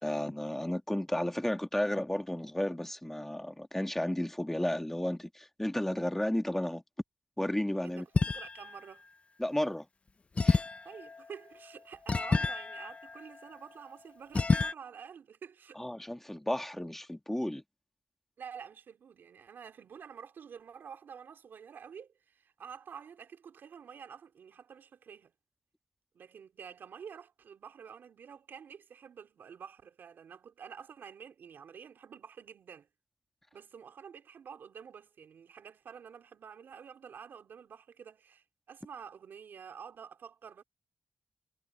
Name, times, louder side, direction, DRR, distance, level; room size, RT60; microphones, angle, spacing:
voice 1, 0.0-6.8 7.4-8.1 9.4-9.9 10.4-10.6 15.8-17.6, left 1 dB, 10° left, 1.7 m, -33 dB
voice 2, 7.8-9.1 10.8-15.8 18.4-25.3 26.1-32.9 33.5-40.6, right 7 dB, 75° right, 3.1 m, -49 dB
sound 1, 8.1-8.8 10.4-13.8 14.3-14.7, left 4 dB, 35° left, 0.8 m, -30 dB
cardioid pair, 75°, 4 cm